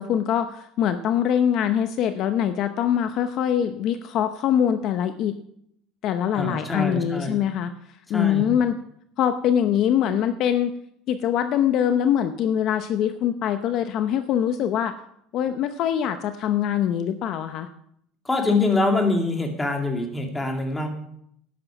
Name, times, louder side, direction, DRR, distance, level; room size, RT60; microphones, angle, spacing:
voice 1, 0.0-5.3 6.0-7.7 8.1-8.8 9.2-10.7 11.1-14.9 15.3-17.7, left 9 dB, 50° left, 9 dB, 0.7 m, -23 dB
voice 2, 6.3-7.4 8.1-8.5 18.2-20.9, left 2 dB, 10° left, 3 dB, 2.1 m, -24 dB
12.0 x 9.5 x 5.8 m, 0.72 s
cardioid pair, 145°, 0 cm